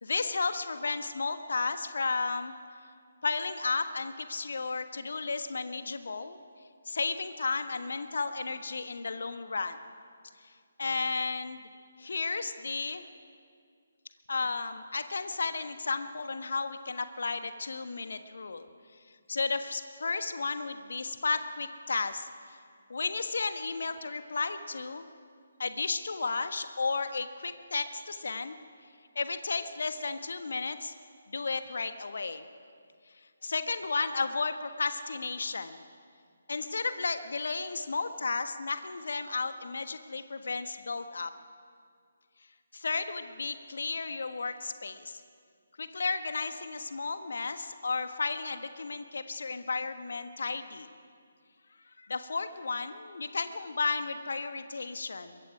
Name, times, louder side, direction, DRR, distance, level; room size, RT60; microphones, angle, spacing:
voice 1, 0.0-2.5 3.2-6.4 6.8-9.8 10.4-10.5 10.8-11.6 12.0-13.1 14.3-18.7 19.3-22.6 22.9-25.0 25.6-28.6 29.1-30.9 31.3-32.4 33.4-35.8 36.5-41.3 42.7-45.2 45.8-50.9 52.0-55.4, left 4 dB, 55° left, 9 dB, 1.4 m, -33 dB
23.5 x 22.5 x 5.0 m, 2.2 s
figure-of-eight pair, 145°, 0 cm